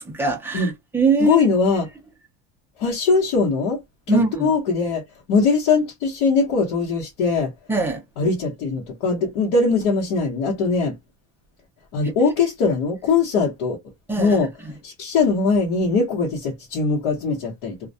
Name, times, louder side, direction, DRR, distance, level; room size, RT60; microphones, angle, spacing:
voice 1, 0.0-1.4 4.1-4.5 7.7-8.0 14.1-14.8, right 3 dB, 5° right, 0.3 m, -22 dB
voice 2, 1.2-1.9 2.8-3.8 4.1-5.0 5.3-7.5 8.2-11.0 11.9-13.8 14.2-14.5 14.8-17.7, left 4 dB, 90° left, 1.0 m, -21 dB
2.3 x 2.1 x 2.6 m
cardioid pair, 175°, 41 cm